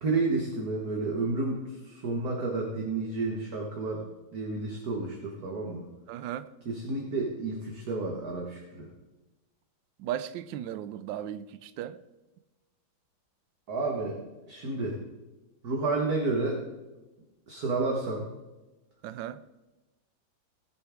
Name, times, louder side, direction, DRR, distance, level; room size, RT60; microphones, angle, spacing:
voice 1, 0.0-4.0 4.3-5.9 6.7-8.9 13.7-14.2 14.5-15.0 15.6-16.6 17.5-18.3, right 3 dB, 50° right, 1.8 m, -30 dB
voice 2, 6.1-6.5 10.0-12.0 19.0-19.4, right 11 dB, 70° right, 1.2 m, -36 dB
18.5 x 7.2 x 3.6 m
omnidirectional pair, 2.3 m